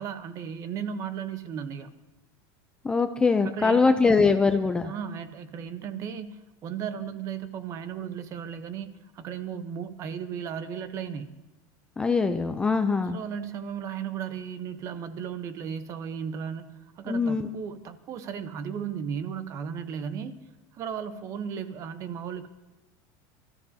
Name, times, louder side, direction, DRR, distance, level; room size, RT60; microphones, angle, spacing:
voice 1, 0.0-1.9 3.4-4.2 4.8-11.3 13.1-20.4 20.7-22.5, right 7 dB, 30° right, 11 dB, 0.8 m, -35 dB
voice 2, 2.8-4.9 12.0-13.2 17.1-17.5, left 4 dB, 10° left, 7 dB, 0.3 m, -22 dB
26.0 x 13.5 x 2.7 m, 1.1 s
supercardioid pair, 170°, 10 cm